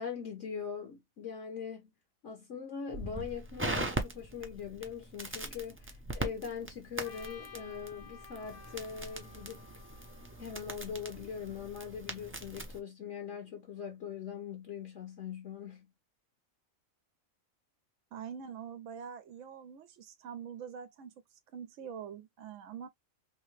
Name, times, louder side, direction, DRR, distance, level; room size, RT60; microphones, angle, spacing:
voice 1, 0.0-1.9 2.2-9.6 10.4-15.9, left 7 dB, 60° left, 1.3 m, -41 dB
Crackle, 2.9-12.8, right 2 dB, 20° right, 0.3 m, -40 dB
Trumpet, 7.0-11.2, left 5 dB, 85° left, 1.6 m, -54 dB
voice 2, 18.1-21.1 21.5-22.9, right 7 dB, 70° right, 0.9 m, -44 dB
3.1 x 2.8 x 3.2 m
omnidirectional pair, 1.4 m